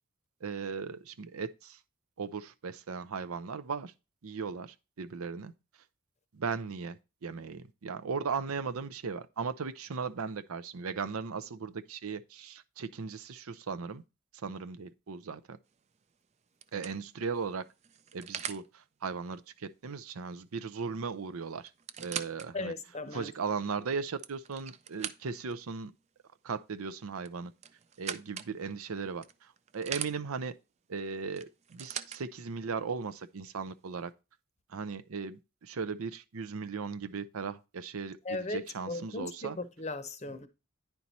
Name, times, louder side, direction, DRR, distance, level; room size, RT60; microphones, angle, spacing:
voice 1, 0.4-1.8 2.2-3.9 4.2-5.5 6.3-14.0 14.4-15.6 16.7-17.7 18.1-21.7 22.0-22.7 23.1-25.9 26.4-27.5 28.0-30.5 30.9-34.1 34.7-39.6, right 5 dB, 80° right, 0.6 m, -37 dB
sound 1, 15.7-16.0 16.6-18.7 20.7-20.8 21.1-21.2 21.7-22.5 23.1-23.2 23.9-25.5 27.2-28.5 29.2-30.1 31.4-32.2 33.1-33.2, right 8 dB, 30° right, 0.3 m, -41 dB
voice 2, 22.5-23.3 38.3-40.5, left 2 dB, 30° left, 0.7 m, -37 dB
9.8 x 4.5 x 4.1 m
head